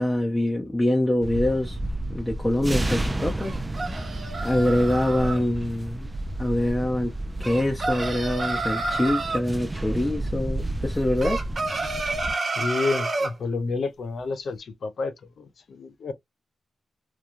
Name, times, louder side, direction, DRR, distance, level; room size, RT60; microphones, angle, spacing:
voice 1, 0.0-1.8 2.1-3.8 4.4-6.1 6.4-7.1 7.4-11.4, left 1 dB, 20° left, 0.7 m, -25 dB
sound 1, 1.2-12.3, right 1 dB, 25° right, 0.4 m, -31 dB
sound 2, 3.4-5.4 7.4-9.4 11.2-13.3, right 3 dB, 55° right, 0.7 m, -29 dB
voice 2, 12.4-16.1, left 3 dB, 70° left, 0.6 m, -30 dB
3.0 x 2.2 x 2.5 m
supercardioid pair, 45°, 0 cm